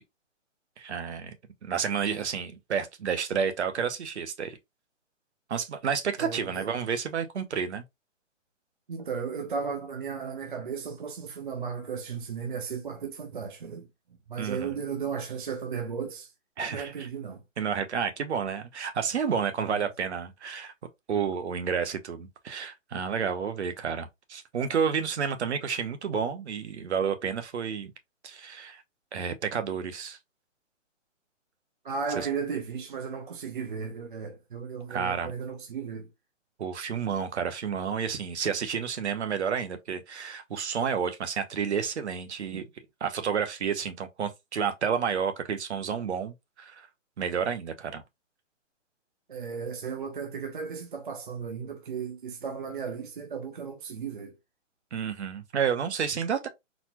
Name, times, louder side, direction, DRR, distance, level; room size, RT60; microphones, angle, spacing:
voice 1, 0.8-1.4 1.6-4.6 5.5-7.8 14.4-14.8 16.6-17.1 17.6-20.7 21.1-27.9 28.2-28.8 29.1-30.2 32.1-32.3 34.9-35.3 36.6-42.6 43.0-46.9 47.2-48.0 54.9-56.5, right 7 dB, 60° right, 0.8 m, -30 dB
voice 2, 6.2-6.7 8.9-13.9 14.3-16.3 16.6-17.4 19.6-19.8 31.8-36.1 42.5-42.7 49.3-54.4, right 6 dB, 40° right, 0.5 m, -35 dB
4.1 x 2.2 x 2.9 m
hypercardioid pair, 170°, 38 cm